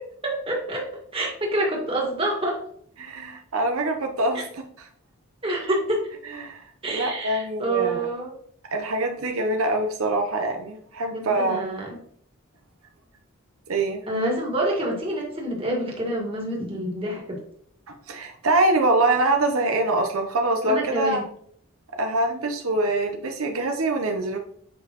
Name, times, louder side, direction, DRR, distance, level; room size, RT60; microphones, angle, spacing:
voice 1, 0.2-0.8 1.1-2.6 5.4-6.0 6.8-8.3 11.1-12.0 14.1-17.4 20.6-21.2, right 1 dB, 25° right, -2 dB, 1.8 m, -27 dB
voice 2, 3.0-4.9 6.2-8.1 8.7-11.6 13.7-14.0 18.1-21.2 22.0-24.4, right 2 dB, 80° right, 4 dB, 0.8 m, -24 dB
8.0 x 5.2 x 3.0 m, 0.64 s
head